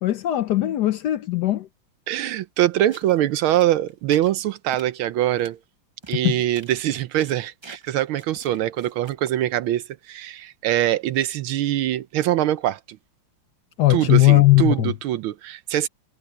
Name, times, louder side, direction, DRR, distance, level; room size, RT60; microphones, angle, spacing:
voice 1, 0.0-1.7 6.2-6.4 13.8-14.9, left 17 dB, 75° left, 1.0 m, -18 dB
voice 2, 2.1-5.6 6.1-13.0 13.9-15.9, right 13 dB, 75° right, 1.4 m, -23 dB
sound 1, 2.9-3.2 3.5-4.3 4.7-4.9 5.3-5.5 6.0-6.2 6.5-6.9 7.2-9.4, right 3 dB, 40° right, 0.4 m, -46 dB
omnidirectional pair, 2.4 m